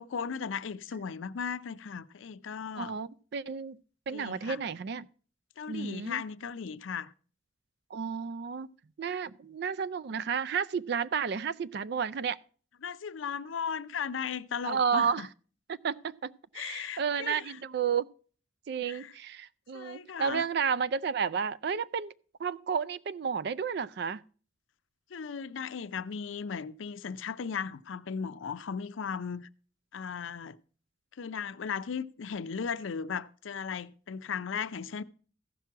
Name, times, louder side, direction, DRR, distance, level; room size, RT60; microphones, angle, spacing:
voice 1, 0.0-2.9 4.1-4.6 5.6-7.1 12.8-15.3 16.5-17.6 18.9-19.1 19.7-20.5 25.1-29.5 29.9-30.6 31.2-35.0, left 6 dB, 80° left, 0.5 m, -36 dB
voice 2, 2.8-3.8 4.1-5.1 5.7-6.2 7.9-8.7 9.0-12.4 14.6-15.3 15.7-18.1 18.7-22.1 22.4-24.2, right 6 dB, 55° right, 0.4 m, -32 dB
15.0 x 6.0 x 4.5 m
head